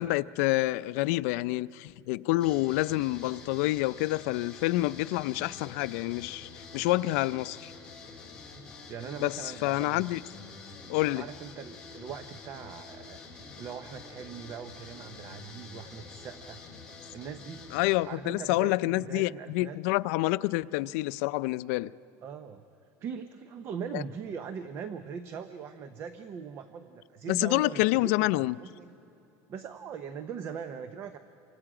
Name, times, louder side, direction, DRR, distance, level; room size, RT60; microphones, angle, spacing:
voice 1, 0.0-7.7 9.2-10.2 10.9-11.3 17.7-21.9 23.9-24.0 27.3-28.6, left 19 dB, 75° left, 0.4 m, -28 dB
sound 1, 2.4-18.0, left 4 dB, 10° left, 3.0 m, -47 dB
voice 2, 8.9-10.1 11.1-13.2 13.6-16.6 17.1-17.6 18.0-19.8 22.2-22.7 23.0-28.9 29.5-31.2, right 7 dB, 30° right, 0.7 m, -41 dB
29.0 x 25.0 x 5.0 m
cardioid pair, 175°, 8 cm